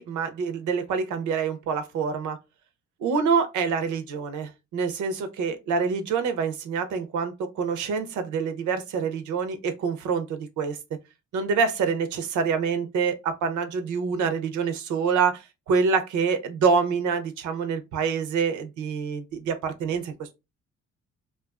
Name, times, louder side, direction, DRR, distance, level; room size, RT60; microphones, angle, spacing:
voice 1, 0.0-2.4 3.0-11.0 11.3-20.3, right 5 dB, 75° right, 0.6 m, -26 dB
2.5 x 2.3 x 2.3 m
cardioid pair, 90°, 30 cm